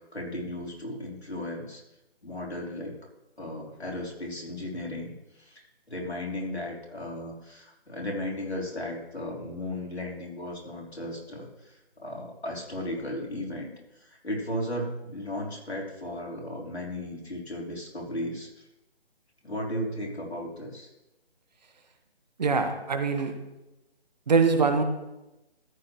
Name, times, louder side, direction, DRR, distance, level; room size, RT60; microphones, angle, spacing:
voice 1, 0.1-1.8 2.2-2.9 3.4-13.7 14.0-18.6 19.4-20.9, left 1 dB, 85° left, -2 dB, 3.6 m, -35 dB
voice 2, 22.4-23.3 24.3-24.8, right 4 dB, 40° right, 6 dB, 1.2 m, -23 dB
14.0 x 10.5 x 3.0 m, 0.97 s
figure-of-eight pair, 150°, 32 cm